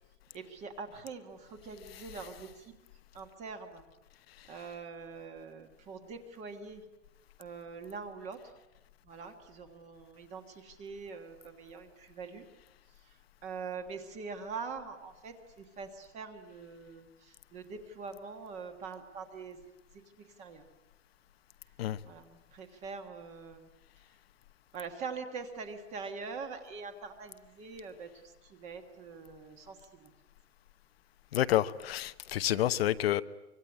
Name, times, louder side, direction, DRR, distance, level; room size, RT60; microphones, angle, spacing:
voice 1, 0.3-2.8 3.1-3.9 4.5-6.8 7.4-8.5 9.0-12.5 12.9-19.6 19.9-20.7 22.0-23.7 24.7-30.1, right 5 dB, 20° right, 1.6 m, -44 dB
voice 2, 31.3-33.2, left 13 dB, 55° left, 1.0 m, -29 dB
25.0 x 24.0 x 9.7 m
supercardioid pair, 180°, 36 cm